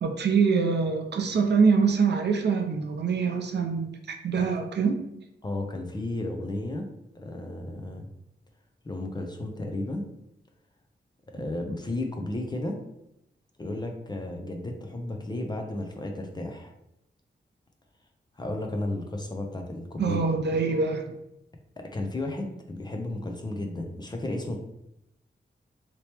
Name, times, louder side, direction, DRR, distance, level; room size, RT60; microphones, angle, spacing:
voice 1, 0.0-3.9 4.2-5.0 20.0-21.1, right 5 dB, 65° right, 4 dB, 0.5 m, -24 dB
voice 2, 5.4-6.9 7.1-8.1 8.8-10.1 11.3-12.8 13.6-16.7 18.4-20.2 21.8-24.6, left 2 dB, 25° left, 3 dB, 0.5 m, -33 dB
2.9 x 2.9 x 3.3 m, 0.83 s
wide cardioid pair, 115°, 19 cm